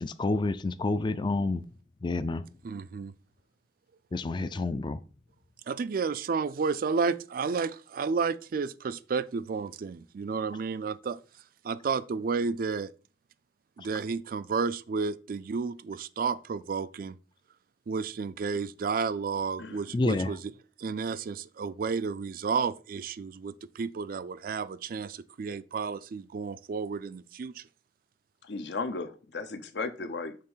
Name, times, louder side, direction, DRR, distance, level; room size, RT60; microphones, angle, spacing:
voice 1, 0.0-1.6 2.0-2.4 4.1-5.0 19.9-20.3, left 2 dB, 25° left, 0.4 m, -28 dB
voice 2, 2.6-3.1 5.7-11.2 11.6-12.9 13.8-17.2 17.9-20.5 20.8-27.7, right 5 dB, 55° right, 0.4 m, -31 dB
voice 3, 19.6-19.9 28.4-30.4, left 3 dB, 75° left, 0.8 m, -35 dB
6.6 x 3.4 x 5.5 m
head